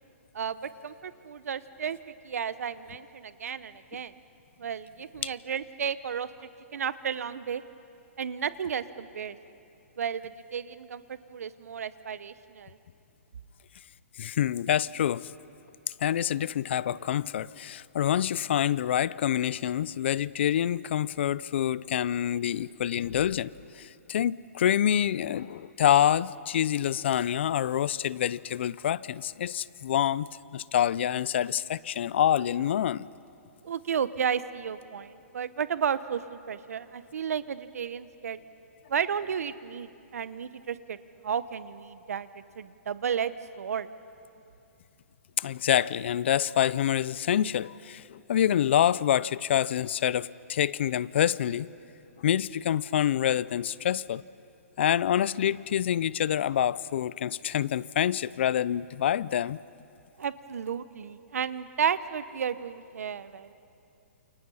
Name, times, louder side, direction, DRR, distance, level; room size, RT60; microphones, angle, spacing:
voice 1, 0.3-2.0 2.2-4.1 4.6-6.3 6.7-7.6 8.2-9.4 10.0-12.8 33.6-38.4 38.9-41.0 41.2-42.3 42.6-43.3 43.6-43.9 60.2-63.5, right 7 dB, 75° right, 14 dB, 1.0 m, -33 dB
voice 2, 14.2-15.3 16.0-33.1 45.4-51.7 52.2-54.2 54.8-59.6, left 10 dB, 50° left, 21 dB, 0.5 m, -27 dB
29.5 x 29.0 x 5.7 m, 2.7 s
hypercardioid pair, 170°, 8 cm